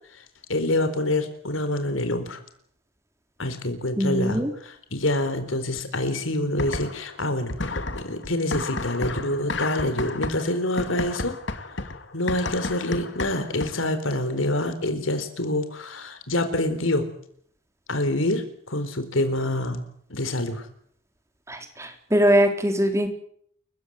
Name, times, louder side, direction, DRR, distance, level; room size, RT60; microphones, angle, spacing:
voice 1, 0.5-2.4 3.4-11.4 12.1-17.1 17.9-19.8 20.1-20.7, left 1 dB, 80° left, 9 dB, 4.1 m, -26 dB
voice 2, 4.0-4.5 21.5-23.1, equal, 15° right, 6 dB, 3.9 m, -22 dB
sound 1, 6.6-7.2 7.5-14.0, left 3 dB, 60° left, 2.5 m, -32 dB
29.5 x 16.0 x 9.5 m, 0.65 s
head